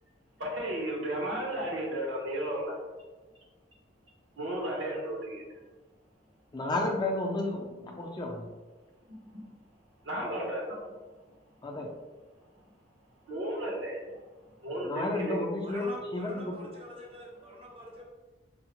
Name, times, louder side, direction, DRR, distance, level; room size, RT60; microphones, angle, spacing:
voice 1, 0.4-2.7 4.4-5.4 10.1-10.8 13.3-14.0 14.6-15.4, right 1 dB, 80° right, -2 dB, 1.0 m, -33 dB
voice 2, 6.5-8.5 11.6-11.9 14.8-16.6, left 2 dB, 20° left, 0 dB, 0.4 m, -32 dB
voice 3, 15.6-18.0, equal, 30° right, -1 dB, 0.6 m, -45 dB
4.6 x 2.1 x 2.9 m, 1.2 s
head